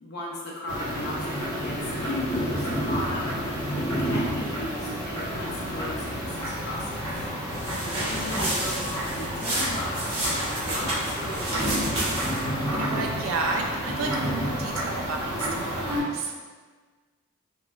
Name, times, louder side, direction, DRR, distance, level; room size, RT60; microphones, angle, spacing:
voice 1, 0.0-3.3 4.0-7.3 8.0-12.0, left 1 dB, 50° left, -4 dB, 0.5 m, -36 dB
sound 1, 0.7-16.0, equal, 15° left, 0.8 m, -30 dB
sound 2, 7.5-12.5, right 1 dB, 85° right, 0.9 m, -30 dB
voice 2, 7.6-8.1 12.7-16.3, right 3 dB, 65° right, 1 dB, 0.3 m, -32 dB
3.0 x 2.3 x 2.3 m, 1.4 s
head